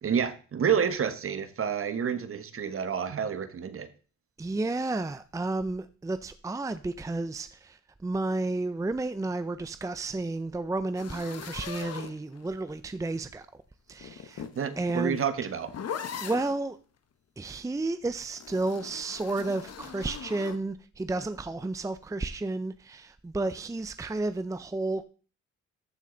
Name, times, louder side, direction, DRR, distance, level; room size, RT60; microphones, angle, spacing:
voice 1, 0.0-3.9 14.6-15.7, right 7 dB, 45° right, 1.3 m, -29 dB
voice 2, 4.4-13.6 13.9-14.5 14.8-15.2 16.2-16.8 17.4-25.1, right 2 dB, 10° right, 0.5 m, -32 dB
sound 1, 11.0-12.7 13.9-16.6 18.3-20.6, left 8 dB, 55° left, 1.2 m, -40 dB
13.5 x 6.3 x 3.9 m
cardioid pair, 90°, 30 cm